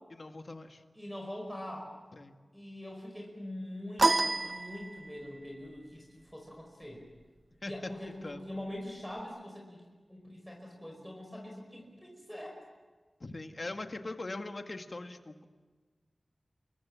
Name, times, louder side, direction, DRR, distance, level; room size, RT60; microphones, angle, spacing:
voice 1, 0.1-0.8 2.1-2.3 7.6-7.9 8.2-8.5 13.2-15.4, left 2 dB, 45° left, 6 dB, 1.9 m, -41 dB
voice 2, 1.0-1.9 2.5-7.0 7.6-9.8 10.1-12.6, left 1 dB, ahead, 0 dB, 5.2 m, -43 dB
sound 1, 4.0-5.4, right 2 dB, 45° right, 0.9 m, -28 dB
28.0 x 22.5 x 7.5 m, 1.4 s
wide cardioid pair, 85°, 0 cm